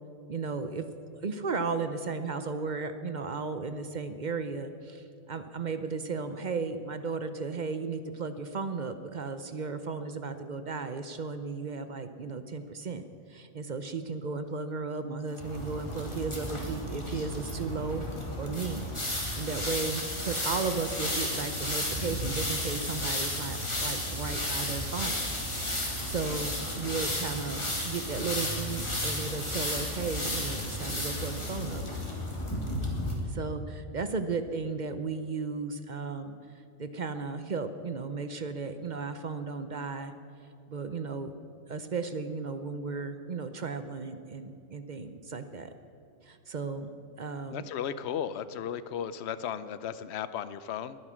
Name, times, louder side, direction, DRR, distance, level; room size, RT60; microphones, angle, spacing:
voice 1, 0.3-0.9 1.2-13.0 13.3-18.0 18.4-25.2 25.8-31.8 33.2-36.3 36.8-40.1 40.7-41.3 41.7-45.7 46.2-46.9 47.2-47.7, right 4 dB, 45° right, 10 dB, 0.7 m, -35 dB
sound 1, 15.3-33.1, left 1 dB, 25° left, 2.4 m, -33 dB
voice 2, 47.5-51.0, left 9 dB, 65° left, 14 dB, 0.9 m, -35 dB
21.0 x 9.6 x 6.3 m, 2.5 s
omnidirectional pair, 1.3 m